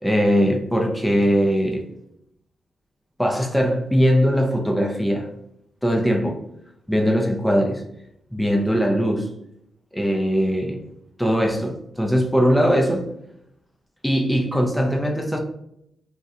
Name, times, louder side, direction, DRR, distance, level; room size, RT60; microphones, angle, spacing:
voice 1, 0.0-1.9 3.2-5.3 5.8-6.4 6.9-7.8 8.3-9.3 9.9-10.8 11.2-13.0 14.0-15.4, equal, ahead, 1 dB, 0.3 m, -20 dB
3.5 x 2.1 x 2.7 m, 0.77 s
cardioid pair, 125°, 0 cm